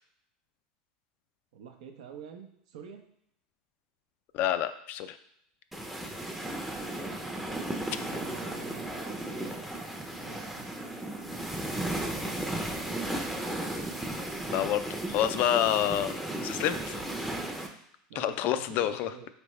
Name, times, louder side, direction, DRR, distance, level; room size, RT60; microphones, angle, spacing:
voice 1, 1.5-3.0 7.9-9.6 10.2-11.4 11.7-12.4 12.9-13.3 18.1-19.3, right 7 dB, 80° right, 5 dB, 0.7 m, -47 dB
voice 2, 4.3-5.2 14.5-14.8 15.1-16.2 16.4-17.0 18.1-19.1, left 11 dB, 55° left, 11 dB, 0.3 m, -28 dB
sound 1, 5.7-17.7, right 1 dB, 5° right, 0.6 m, -35 dB
4.5 x 3.4 x 3.1 m, 0.74 s
supercardioid pair, 110°, 4 cm